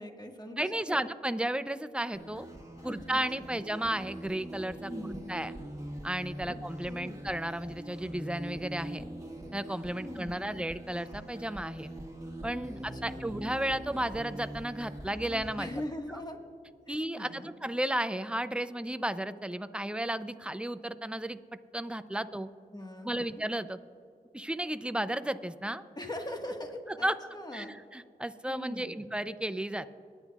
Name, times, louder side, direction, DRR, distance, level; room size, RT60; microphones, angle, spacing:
voice 1, 0.0-1.0 2.8-3.5 4.9-5.4 6.5-6.6 6.9-7.2 10.0-10.6 12.7-13.3 15.6-16.4 16.9-17.5 22.7-23.4 25.9-27.7 28.5-29.1, left 1 dB, 25° left, 3 dB, 1.6 m, -42 dB
voice 2, 0.6-2.5 2.8-5.5 6.0-9.1 9.5-11.9 12.4-15.7 16.1-16.2 16.9-21.4 21.7-22.5 23.0-23.8 24.3-25.8 27.0-27.1 27.5-29.9, right 1 dB, 5° right, 12 dB, 0.5 m, -33 dB
sound 1, 2.1-15.9, right 1 dB, 20° right, 1.7 m, -43 dB
21.0 x 9.9 x 2.4 m, 2.3 s
cardioid pair, 45°, 16 cm